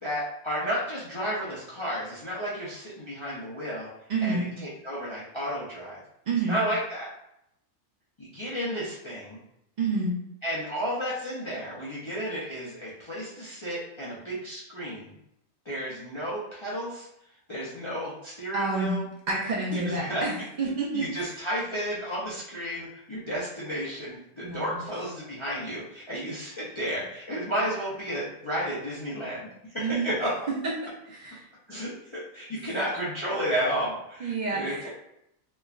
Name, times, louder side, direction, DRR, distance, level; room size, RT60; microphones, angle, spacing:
voice 1, 0.0-3.9 4.2-6.0 6.5-7.1 8.2-9.4 10.4-15.1 15.7-17.1 17.5-19.0 19.9-20.2 20.9-29.5 29.7-30.3 31.7-34.9, equal, 45° left, -8 dB, 0.3 m, -32 dB
voice 2, 4.1-4.5 6.3-6.6 9.8-10.1 18.5-18.9 19.3-21.4 24.4-24.8 29.8-30.1 30.6-31.5 34.2-34.9, right 3 dB, 85° right, -3 dB, 0.4 m, -29 dB
3.2 x 2.1 x 2.3 m, 0.78 s
omnidirectional pair, 1.4 m